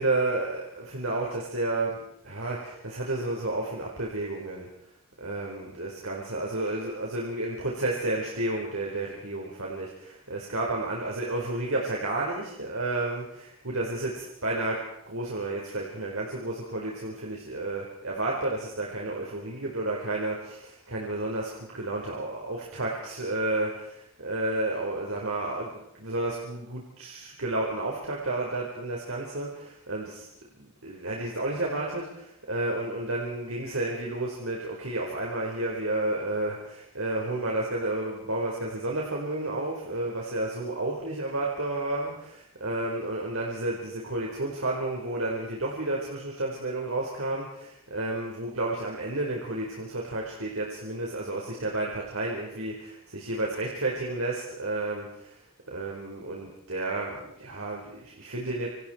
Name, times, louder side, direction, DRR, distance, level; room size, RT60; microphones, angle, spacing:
voice 1, 0.0-4.7 5.2-14.1 14.4-30.3 30.6-55.4 55.7-58.7, right 2 dB, 85° right, -2 dB, 4.9 m, -31 dB
29.0 x 26.0 x 4.6 m, 0.76 s
head